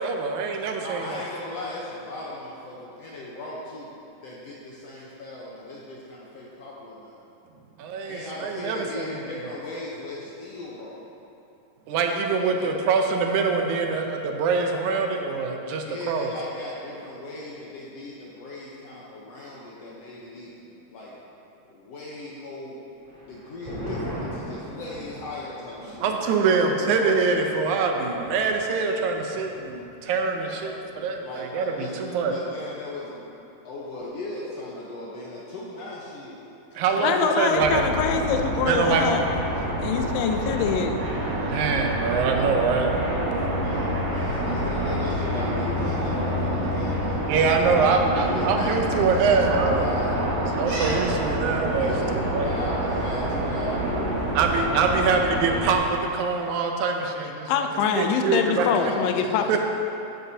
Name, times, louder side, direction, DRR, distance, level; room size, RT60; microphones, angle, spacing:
voice 1, 0.0-1.2 7.8-9.3 11.9-16.3 26.0-32.4 36.8-37.9 38.7-39.1 41.5-42.9 47.3-49.9 50.6-52.5 54.3-57.7 58.0-58.7 59.5-59.6, right 4 dB, 75° right, 3 dB, 1.9 m, -24 dB
voice 2, 0.8-3.9 4.2-7.2 8.1-11.0 12.5-12.7 15.8-21.2 21.7-22.8 23.2-27.2 30.5-30.7 31.2-33.3 33.6-36.4 36.9-37.2 43.6-50.1 51.7-54.4 58.3-59.6, left 2 dB, 70° left, -5 dB, 1.6 m, -37 dB
sound 1, 23.0-30.0 30.3-30.4 30.8-31.2, equal, 35° right, 1.3 m, -40 dB
voice 3, 37.0-39.2 39.8-41.0 57.5-59.5, left 7 dB, 90° left, 5 dB, 2.4 m, -24 dB
sound 2, 37.5-55.7, right 1 dB, 55° right, 3.1 m, -27 dB
12.0 x 9.5 x 2.8 m, 2.8 s
omnidirectional pair, 3.9 m